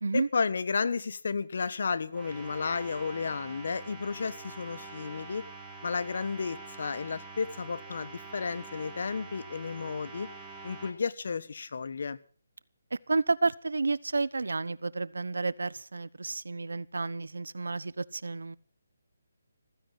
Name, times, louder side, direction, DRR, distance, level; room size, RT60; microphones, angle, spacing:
voice 1, 0.1-5.4 5.8-10.3 10.6-12.2, left 5 dB, 60° left, 1.3 m, -32 dB
sound 1, 2.1-10.9, right 3 dB, 15° right, 3.7 m, -45 dB
voice 2, 12.9-18.6, right 3 dB, 80° right, 0.9 m, -31 dB
15.5 x 15.0 x 6.1 m
figure-of-eight pair, 155°, 0 cm